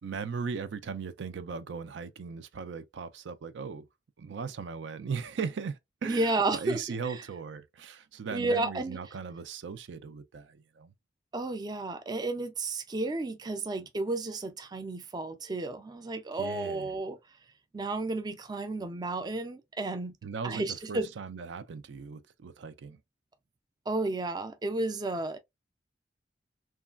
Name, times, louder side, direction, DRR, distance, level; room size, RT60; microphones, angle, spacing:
voice 1, 0.0-3.9 4.2-10.9 16.4-16.9 20.2-23.0, right 5 dB, 90° right, 0.4 m, -38 dB
voice 2, 6.1-6.8 8.3-9.0 11.3-17.2 17.7-20.2 20.4-21.1 23.9-25.4, right 2 dB, 20° right, 0.3 m, -32 dB
3.1 x 2.3 x 2.3 m
head